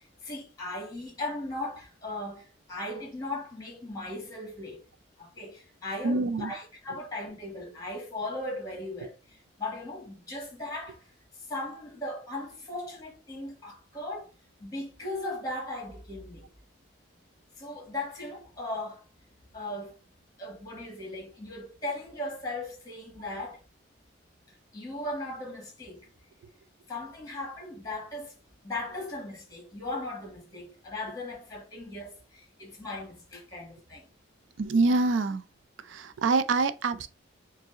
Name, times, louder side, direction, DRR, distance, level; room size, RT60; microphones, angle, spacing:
voice 1, 0.0-4.8 5.2-9.1 9.6-11.0 11.5-14.3 14.6-16.5 17.6-19.0 19.5-19.9 20.4-23.6 24.7-26.0 26.9-28.3 28.6-34.1, left 2 dB, 20° left, 1.2 m, -37 dB
voice 2, 6.0-6.5 6.9-7.0 34.6-35.4 35.8-37.1, right 3 dB, 75° right, 0.4 m, -26 dB
4.9 x 2.0 x 3.6 m
head